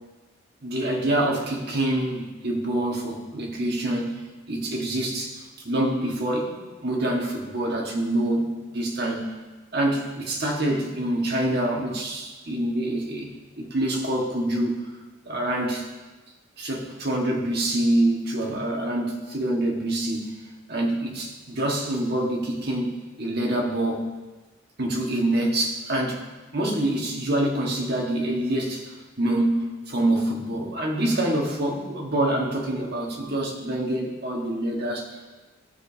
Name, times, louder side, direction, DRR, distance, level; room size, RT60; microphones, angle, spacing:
voice 1, 0.6-4.2 4.5-5.4 5.6-9.3 9.7-13.3 13.6-14.9 15.2-15.9 16.6-20.3 20.7-24.1 24.8-26.2 26.5-35.1, right 1 dB, 50° right, -1 dB, 1.5 m, -26 dB
16.0 x 6.8 x 2.8 m, 1.2 s
head